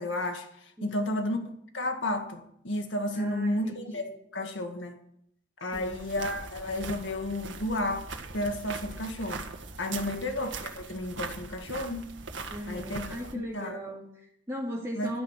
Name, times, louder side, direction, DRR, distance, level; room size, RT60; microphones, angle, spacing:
voice 1, 0.0-1.4 1.7-5.0 5.6-8.1 8.3-9.5 9.8-12.1 12.7-13.2 13.5-13.8 15.0-15.2, left 1 dB, 80° left, 2.0 m, -32 dB
voice 2, 0.8-1.2 3.1-4.1 5.6-6.0 9.9-10.2 12.5-15.2, equal, 15° right, 2.1 m, -38 dB
sound 1, 5.7-13.3, right 4 dB, 75° right, 1.7 m, -41 dB
13.0 x 10.0 x 8.2 m
head